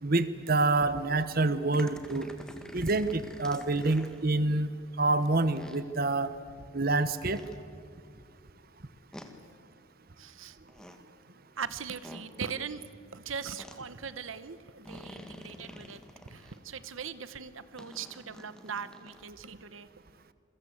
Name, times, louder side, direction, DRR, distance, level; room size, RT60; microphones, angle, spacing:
voice 1, 0.0-2.3 2.7-4.7 5.0-6.3 6.7-7.4, right 2 dB, 45° right, 12 dB, 1.0 m, -27 dB
sound 1, 1.7-4.2 5.5-5.8 7.3-7.6 9.1-9.3 10.6-11.0 12.0-12.3 13.6-13.8 14.9-16.6 17.8-19.3, left 1 dB, 5° left, 1.9 m, -47 dB
voice 2, 10.2-10.6 11.6-16.0 16.3-19.9, right 6 dB, 75° right, 13 dB, 1.1 m, -40 dB
28.5 x 23.5 x 8.1 m, 2.3 s
head